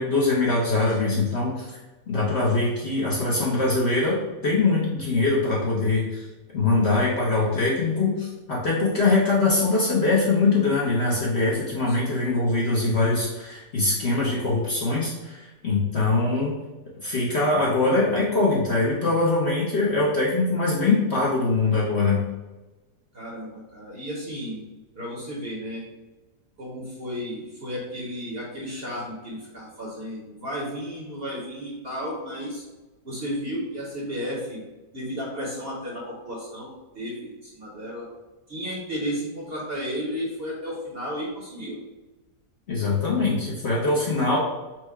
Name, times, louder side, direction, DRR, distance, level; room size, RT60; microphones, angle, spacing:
voice 1, 0.0-1.8 2.1-6.2 6.5-16.5 17.0-22.2 42.7-44.4, left 3 dB, 50° left, -5 dB, 0.8 m, -23 dB
voice 2, 0.9-1.5 11.9-12.2 23.1-24.7 24.9-25.8 26.6-32.6 33.0-34.6 34.9-36.7 36.9-38.1 38.5-41.8, equal, 45° right, -4 dB, 0.9 m, -33 dB
4.5 x 2.2 x 4.6 m, 1.1 s
omnidirectional pair, 1.8 m